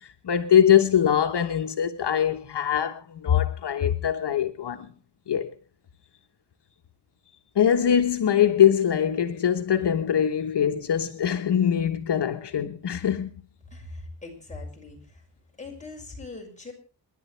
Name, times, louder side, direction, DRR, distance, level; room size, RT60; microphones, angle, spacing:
voice 1, 0.2-4.9 5.3-5.5 7.6-13.3, left 9 dB, 75° left, 1.2 m, -22 dB
voice 2, 13.7-15.0 15.6-16.7, left 3 dB, 15° left, 5.9 m, -40 dB
28.0 x 11.0 x 3.3 m
wide cardioid pair, 135°, 41 cm